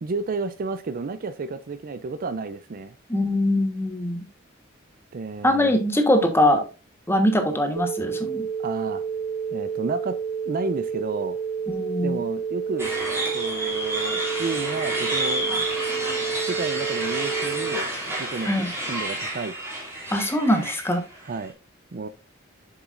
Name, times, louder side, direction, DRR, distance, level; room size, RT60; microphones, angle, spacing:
voice 1, 0.0-2.9 5.1-5.8 8.6-9.0 9.5-10.2 10.5-11.4 12.0-12.9 13.3-15.6 16.4-19.5 21.2-21.5 21.9-22.1, right 3 dB, 45° right, 0.4 m, -31 dB
voice 2, 3.1-4.2 5.4-6.7 7.1-8.5 11.7-12.2 18.4-18.7 20.1-21.0, left 1 dB, 10° left, 1.2 m, -22 dB
sound 1, 7.8-17.8, right 6 dB, 70° right, 0.9 m, -30 dB
sound 2, 12.8-21.4, right 1 dB, 15° right, 2.7 m, -30 dB
7.5 x 7.0 x 2.5 m
head